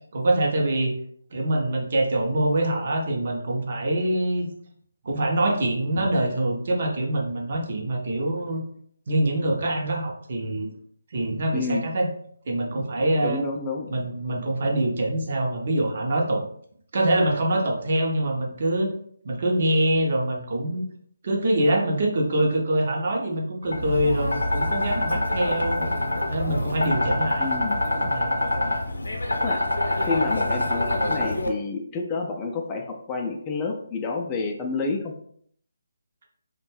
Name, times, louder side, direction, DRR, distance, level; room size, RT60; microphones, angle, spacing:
voice 1, 0.1-0.9 1.3-4.5 5.0-8.6 9.1-10.7 11.1-12.1 12.5-13.4 13.9-16.4 16.9-18.9 19.2-20.8 21.2-25.8 26.3-27.5 28.0-28.3 31.0-31.1, right 1 dB, 50° right, 0 dB, 0.6 m, -24 dB
voice 2, 13.2-13.9 27.4-27.8 29.4-29.6 30.0-35.1, left 4 dB, 20° left, 2 dB, 0.3 m, -29 dB
sound 1, 23.7-31.5, left 1 dB, 80° left, 0.5 m, -25 dB
2.5 x 2.1 x 3.1 m, 0.62 s
figure-of-eight pair, 150°, 0 cm